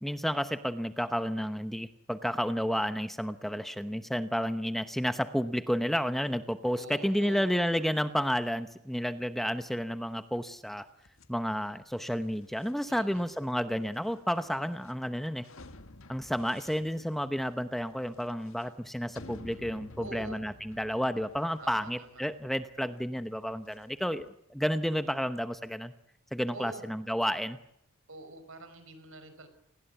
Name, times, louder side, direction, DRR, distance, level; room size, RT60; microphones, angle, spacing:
voice 1, 0.0-10.9 11.3-15.5 16.1-25.9 26.3-27.6, equal, ahead, 10 dB, 0.9 m, -31 dB
voice 2, 6.7-7.5 12.9-13.3 20.0-20.4 21.6-22.2 26.5-26.9 28.1-29.5, right 1 dB, 65° right, 10 dB, 5.7 m, -46 dB
sound 1, 11.0-24.3, left 2 dB, 65° left, 1.6 m, -53 dB
29.0 x 20.5 x 8.2 m, 0.80 s
head